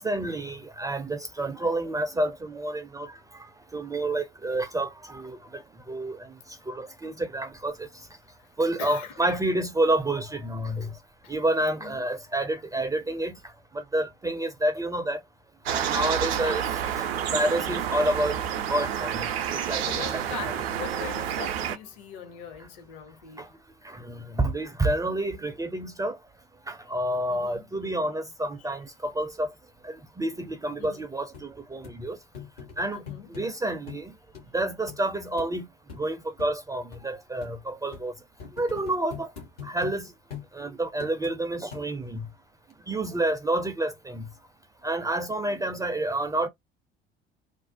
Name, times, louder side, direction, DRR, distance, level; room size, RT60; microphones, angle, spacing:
voice 1, 0.0-5.6 5.9-6.3 6.7-7.9 8.6-10.9 11.3-13.4 13.7-15.2 15.7-16.6 16.9-18.4 18.7-20.2 23.4-23.5 23.8-26.2 26.7-29.5 29.8-32.2 32.8-33.0 33.3-34.1 34.5-35.7 36.0-38.1 38.6-39.3 39.6-40.1 40.5-42.3 42.9-44.3 44.8-46.5, right 1 dB, 10° right, 0.4 m, -29 dB
voice 2, 8.8-9.4 11.2-11.3 11.8-12.1 19.8-23.5 27.3-27.7 30.8-31.0 32.9-33.3, left 8 dB, 55° left, 0.8 m, -41 dB
sound 1, 15.7-21.8, right 9 dB, 75° right, 0.5 m, -29 dB
sound 2, 30.8-30.9 31.3-31.5 31.8-32.0 32.3-33.5 33.9-34.1 34.3-34.5 34.9-35.0 35.4-35.5 35.9-36.1 36.4-36.5 36.9-37.0 37.4-37.5 37.9-38.1 38.4-40.0 40.3-40.5 41.0-41.4 41.7-42.2 42.7-42.8, left 7 dB, 75° left, 1.1 m, -42 dB
2.5 x 2.0 x 2.6 m
figure-of-eight pair, 60°, 31 cm